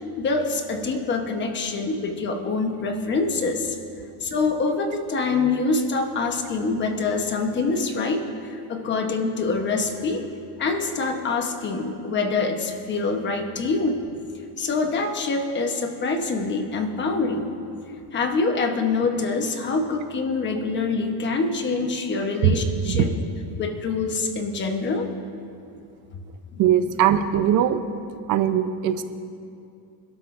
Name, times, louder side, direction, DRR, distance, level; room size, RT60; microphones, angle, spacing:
voice 1, 0.2-3.8 4.2-10.2 10.6-14.0 14.6-17.5 18.1-23.1 23.6-25.1 26.5-26.6, left 3 dB, 25° left, 4 dB, 1.1 m, -25 dB
voice 2, 26.6-27.8 28.3-29.0, right 10 dB, 45° right, 9 dB, 0.7 m, -20 dB
28.0 x 12.5 x 2.6 m, 2.6 s
cardioid pair, 175°, 43 cm